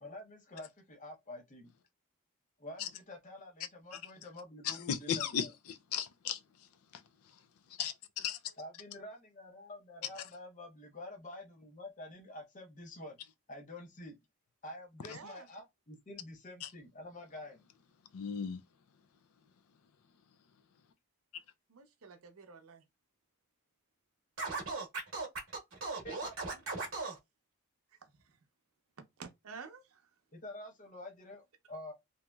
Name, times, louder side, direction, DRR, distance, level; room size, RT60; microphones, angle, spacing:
voice 1, 0.0-1.7 2.6-5.5 8.6-13.2 13.5-14.1 14.6-17.6 26.0-26.6 30.3-31.9, left 1 dB, 35° left, 0.7 m, -48 dB
voice 2, 4.6-6.4 7.8-8.4 15.1-15.2 16.6-16.7 18.1-18.6, left 8 dB, 75° left, 0.4 m, -36 dB
voice 3, 15.0-15.5 21.7-22.8 27.9-28.4 29.2-30.1, right 5 dB, 70° right, 0.6 m, -51 dB
Scratching (performance technique), 24.4-27.2, right 3 dB, 55° right, 0.9 m, -37 dB
2.9 x 2.7 x 2.2 m
head